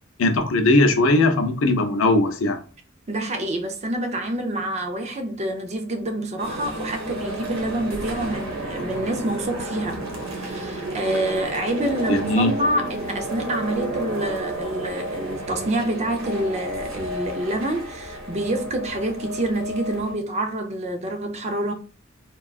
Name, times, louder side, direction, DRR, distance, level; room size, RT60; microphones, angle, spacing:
voice 1, 0.2-2.6 12.1-12.5, left 2 dB, 90° left, 0.6 m, -19 dB
voice 2, 3.1-10.0 10.3-21.7, right 1 dB, 35° right, 0.5 m, -27 dB
sound 1, 6.4-20.1, right 1 dB, 85° right, 0.9 m, -32 dB
3.4 x 2.3 x 2.4 m
head